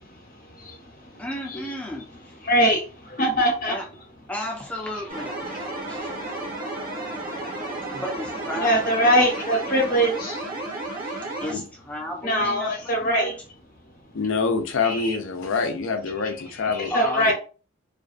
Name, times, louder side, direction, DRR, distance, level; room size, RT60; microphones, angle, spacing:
voice 1, 1.2-2.1 3.7-3.8 4.3-5.4 5.8-6.2 7.9-9.1 11.0-13.3 16.9-17.3, left 1 dB, 5° left, 0.5 m, -33 dB
voice 2, 2.4-3.7 8.6-10.4 12.2-13.3 14.8-15.1 16.9-17.3, equal, 45° left, 0.8 m, -22 dB
sound 1, 5.1-11.5, right 2 dB, 45° right, 0.8 m, -32 dB
voice 3, 14.1-16.9 17.3-17.4, left 4 dB, 75° left, 0.5 m, -25 dB
2.5 x 2.2 x 2.4 m
head